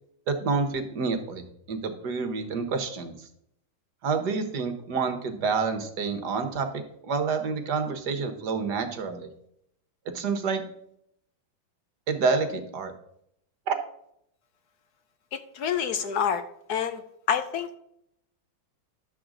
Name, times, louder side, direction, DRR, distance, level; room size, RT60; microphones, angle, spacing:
voice 1, 0.3-3.3 4.0-9.3 10.0-10.6 12.1-12.9 13.7-13.8, right 4 dB, 60° right, 7 dB, 1.6 m, -28 dB
voice 2, 15.5-16.4 16.7-17.0 17.3-17.7, left 8 dB, 70° left, 10 dB, 1.0 m, -26 dB
11.5 x 7.6 x 3.8 m, 0.73 s
omnidirectional pair, 2.2 m